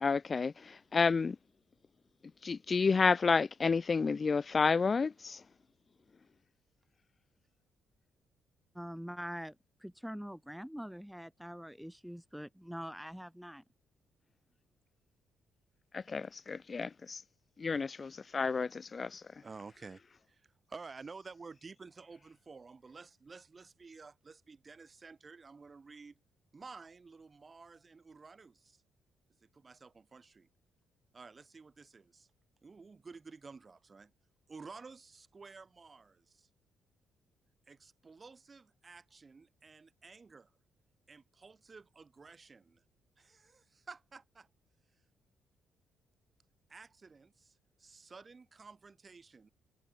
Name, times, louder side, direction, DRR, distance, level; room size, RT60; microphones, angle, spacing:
voice 1, 0.0-1.4 2.4-5.4 15.9-17.2 17.6-19.2, left 4 dB, 35° left, 0.5 m, -30 dB
voice 2, 8.7-9.5 9.8-13.6, equal, ahead, 1.5 m, -44 dB
voice 3, 19.4-20.0 20.3-26.2 26.5-28.8 29.4-30.5 31.1-32.3 32.6-34.1 34.5-36.5 37.7-40.5 41.1-42.8 43.2-44.5 46.7-49.5, right 4 dB, 30° right, 6.9 m, -52 dB
cardioid pair, 90°, 0 cm